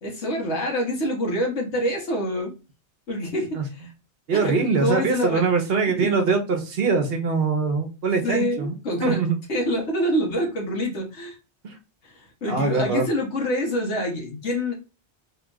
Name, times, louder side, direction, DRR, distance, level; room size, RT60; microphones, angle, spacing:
voice 1, 0.0-2.5 3.1-3.9 4.3-5.5 5.9-6.1 8.2-9.2 9.5-11.3 12.0-14.7, equal, 85° left, 0 dB, 1.6 m, -26 dB
voice 2, 4.3-8.7 9.0-9.4 11.6-11.7 12.5-13.1, right 4 dB, 60° right, 5 dB, 1.0 m, -23 dB
3.6 x 2.3 x 3.8 m, 0.31 s
omnidirectional pair, 1.1 m